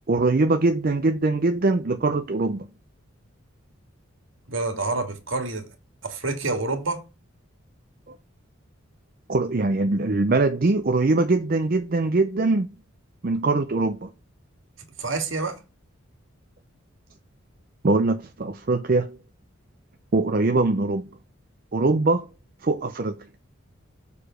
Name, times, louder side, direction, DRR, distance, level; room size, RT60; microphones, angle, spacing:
voice 1, 0.1-2.7 8.1-8.2 9.3-12.7 13.2-14.1 17.8-19.2 20.1-21.1 21.7-22.2 22.6-23.2, right 3 dB, 45° right, 0.5 m, -22 dB
voice 2, 4.5-5.7 6.0-7.1 15.0-15.6, right 3 dB, 65° right, 1.9 m, -28 dB
6.7 x 4.8 x 5.0 m
head